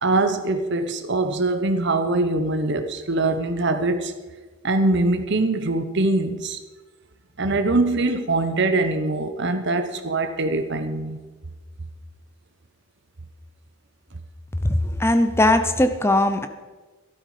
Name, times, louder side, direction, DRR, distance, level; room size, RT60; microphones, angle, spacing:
voice 1, 0.0-4.1 4.6-6.6 7.4-11.2, right 2 dB, 50° right, 8 dB, 1.0 m, -23 dB
voice 2, 14.6-16.5, left 1 dB, 10° left, 9 dB, 0.7 m, -19 dB
13.0 x 11.5 x 5.0 m, 1.3 s
head